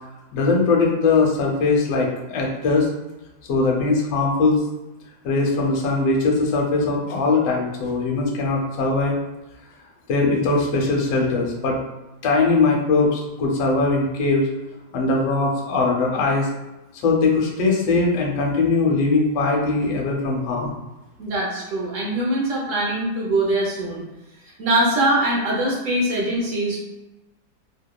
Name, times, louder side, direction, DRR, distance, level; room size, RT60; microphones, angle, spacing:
voice 1, 0.3-2.9 3.5-4.6 5.2-9.2 10.1-11.8 12.2-14.5 14.9-16.5 17.0-20.7, left 3 dB, 70° left, -1 dB, 0.9 m, -20 dB
voice 2, 21.2-24.0 24.3-26.8, right 1 dB, 65° right, -4 dB, 0.8 m, -22 dB
2.8 x 2.0 x 2.2 m, 0.98 s
omnidirectional pair, 1.8 m